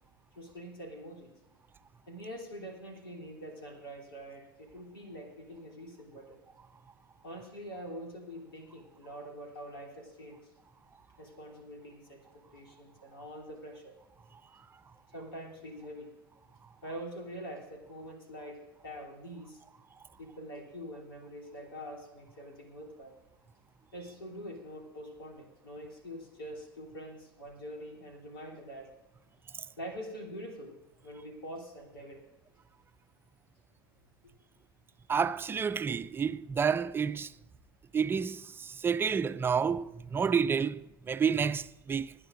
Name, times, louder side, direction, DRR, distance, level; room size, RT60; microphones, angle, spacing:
voice 1, 0.3-1.3 2.1-6.4 7.2-10.5 11.2-12.2 12.5-13.9 15.1-16.1 16.8-19.6 20.2-23.1 23.9-28.9 29.8-30.8 31.0-32.2, equal, 85° left, 3.3 m, -45 dB
voice 2, 35.1-37.3 37.9-42.1, right 6 dB, 20° right, 0.5 m, -30 dB
28.0 x 9.8 x 2.6 m
hypercardioid pair, 90°, 12 cm